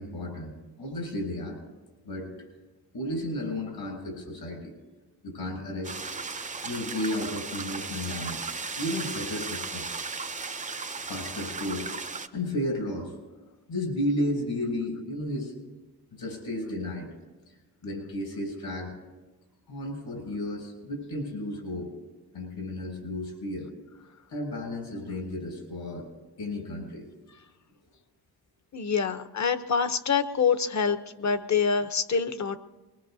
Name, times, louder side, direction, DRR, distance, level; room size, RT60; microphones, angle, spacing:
voice 1, 0.0-1.6 2.0-2.5 2.9-4.7 5.2-6.2 6.6-8.5 8.8-9.9 11.1-13.1 13.7-15.5 16.2-17.1 17.5-17.6 17.8-18.9 19.7-21.9 22.3-23.7 24.3-26.1 26.4-27.1, left 1 dB, 80° left, -1 dB, 7.1 m, -33 dB
sound 1, 5.8-12.3, right 4 dB, 20° right, 0.5 m, -36 dB
voice 2, 28.7-32.6, left 6 dB, 45° left, 11 dB, 0.8 m, -26 dB
23.0 x 22.5 x 2.7 m, 1.2 s
wide cardioid pair, 135°, 39 cm